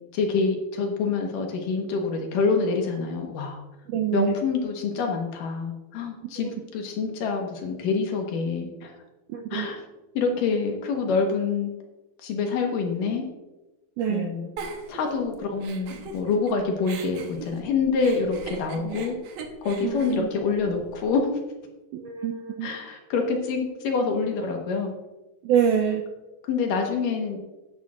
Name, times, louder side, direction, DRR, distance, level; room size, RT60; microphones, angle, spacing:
voice 1, 0.1-3.6 4.1-8.9 9.5-9.8 10.1-11.7 12.2-13.2 14.1-14.5 14.9-19.2 19.6-21.3 22.6-24.9 26.4-27.4, left 4 dB, 70° left, 2 dB, 2.7 m, -26 dB
voice 2, 3.9-4.3 6.4-6.6 9.3-9.7 14.0-14.3 18.8-19.0 19.8-20.3 21.9-22.8 25.4-26.0, right 8 dB, 90° right, 3 dB, 1.8 m, -26 dB
Giggle, 14.6-16.5 16.8-21.1, right 4 dB, 70° right, 1.8 m, -40 dB
12.5 x 10.5 x 2.5 m, 1.1 s
omnidirectional pair, 4.3 m